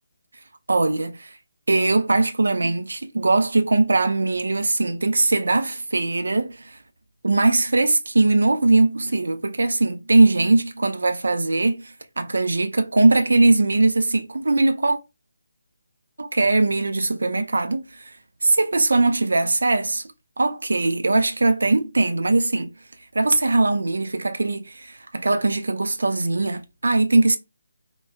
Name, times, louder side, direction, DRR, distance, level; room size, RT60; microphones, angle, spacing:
voice 1, 0.7-1.4 1.7-6.8 7.2-15.0 16.2-18.1 18.4-20.0 20.4-22.7 23.1-27.4, right 2 dB, 65° right, 0.6 m, -20 dB
4.4 x 2.3 x 2.3 m
figure-of-eight pair, 150°, 0 cm